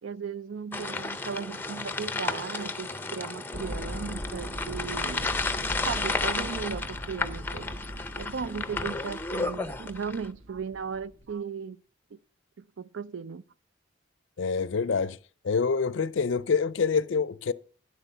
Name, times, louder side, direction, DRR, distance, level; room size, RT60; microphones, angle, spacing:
voice 1, 0.0-5.3 5.8-7.7 8.2-11.8 12.1-12.2 12.6-13.5, right 6 dB, 75° right, 0.5 m, -36 dB
sound 1, 0.7-10.3, left 3 dB, 10° left, 0.5 m, -33 dB
sound 2, 3.5-11.3, equal, 40° right, 1.0 m, -40 dB
voice 2, 14.4-15.2 15.4-17.5, left 5 dB, 75° left, 0.5 m, -26 dB
9.9 x 8.1 x 5.5 m
head